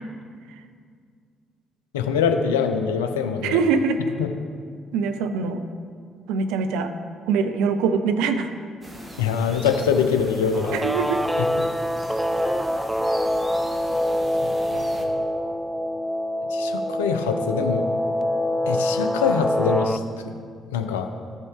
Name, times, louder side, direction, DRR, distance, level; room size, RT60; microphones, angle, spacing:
voice 1, 1.9-3.6 4.2-4.3 9.2-10.8 11.6-11.7 14.7-15.1 16.5-17.9 18.7-20.0 20.7-21.1, left 6 dB, 80° left, 6 dB, 0.5 m, -24 dB
voice 2, 3.4-4.0 4.9-5.6 6.3-6.9 7.3-8.5 10.7-11.2, right 5 dB, 70° right, 8 dB, 0.5 m, -23 dB
sound 1, 8.8-15.0, right 1 dB, 20° right, 1.5 m, -41 dB
Guitar, 10.5-20.0, equal, 5° right, 0.4 m, -25 dB
14.0 x 5.3 x 3.4 m, 2.1 s
figure-of-eight pair, 45°, 0 cm